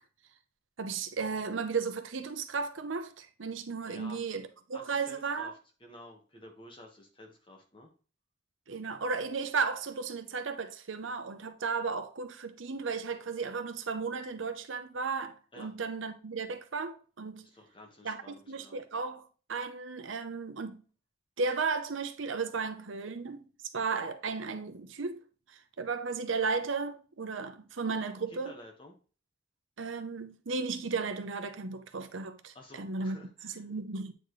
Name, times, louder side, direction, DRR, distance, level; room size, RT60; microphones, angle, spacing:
voice 1, 0.8-5.5 8.7-17.5 18.0-19.2 19.5-20.8 21.4-23.5 23.7-25.2 25.5-28.6 29.8-33.2 33.4-34.1, right 4 dB, 75° right, 0.7 m, -35 dB
voice 2, 3.9-4.2 4.7-7.9 15.5-15.7 17.4-18.8 28.3-28.9 32.5-33.7, left 1 dB, 25° left, 1.4 m, -52 dB
8.9 x 4.2 x 3.2 m
head